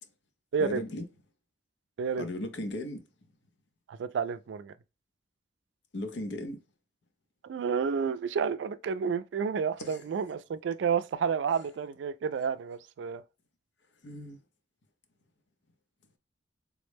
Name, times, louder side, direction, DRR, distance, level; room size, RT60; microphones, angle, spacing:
voice 1, 0.6-1.0 2.2-3.0 5.9-6.6 9.8-10.0 14.0-14.4, left 1 dB, 85° left, 0.6 m, -36 dB
voice 2, 3.9-4.7 7.4-13.2, right 6 dB, 85° right, 0.3 m, -30 dB
3.6 x 2.1 x 3.2 m
head